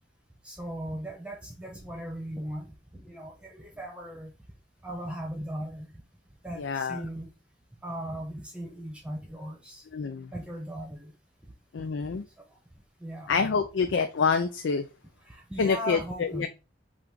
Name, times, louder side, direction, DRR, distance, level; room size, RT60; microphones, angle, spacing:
voice 1, 0.4-4.3 4.8-5.9 6.4-7.3 7.8-9.8 10.3-11.1 13.0-13.3 15.3-16.5, equal, 5° right, 1.0 m, -38 dB
voice 2, 6.6-7.0 9.9-10.3 11.7-12.2 13.3-14.9 15.6-16.5, left 5 dB, 80° left, 0.5 m, -27 dB
5.8 x 2.5 x 3.6 m
head